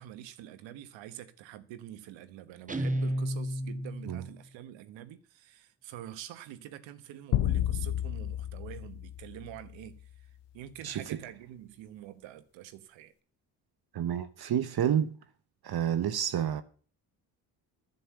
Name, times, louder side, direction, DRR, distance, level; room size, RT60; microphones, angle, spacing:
voice 1, 0.0-13.1, right 12 dB, 80° right, 1.2 m, -46 dB
Guitar, 2.7-4.4, equal, 15° right, 1.3 m, -32 dB
sound 1, 7.3-9.9, left 13 dB, 65° left, 0.7 m, -31 dB
voice 2, 10.8-11.2 13.9-15.2 15.6-16.6, right 9 dB, 55° right, 1.0 m, -29 dB
10.5 x 6.6 x 8.7 m
hypercardioid pair, 45°, 45 cm